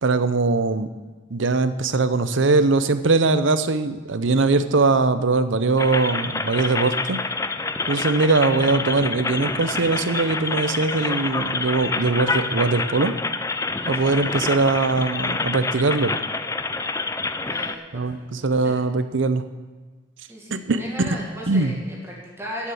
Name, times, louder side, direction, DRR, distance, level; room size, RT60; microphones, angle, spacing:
voice 1, 0.0-0.9 1.3-7.2 7.9-13.2 13.9-16.2 17.9-19.4 20.5-21.2 21.5-21.7, right 3 dB, 75° right, 12 dB, 0.7 m, -21 dB
sound 1, 5.8-17.8, left 3 dB, 15° left, 0.4 m, -27 dB
voice 2, 13.8-14.1 17.5-18.1 18.4-18.8 20.3-22.7, equal, 15° right, -4 dB, 2.0 m, -36 dB
10.5 x 7.3 x 8.6 m, 1.4 s
head